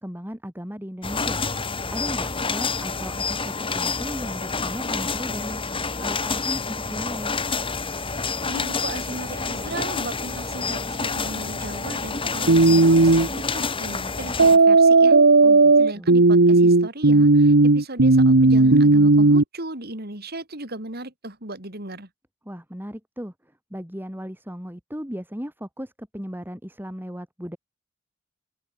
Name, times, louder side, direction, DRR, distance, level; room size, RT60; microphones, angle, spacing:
voice 1, 0.0-1.4 1.9-5.6 6.0-7.3 15.4-16.1 22.5-23.3 23.7-27.6, equal, 10° right, 7.6 m, -36 dB
sound 1, 1.0-14.6, left 4 dB, 25° left, 2.9 m, -28 dB
voice 2, 8.5-15.2 15.8-22.1, right 2 dB, 50° right, 5.9 m, -36 dB
sound 2, 12.5-13.3 14.4-19.4, right 3 dB, 80° right, 1.3 m, -14 dB
open air
head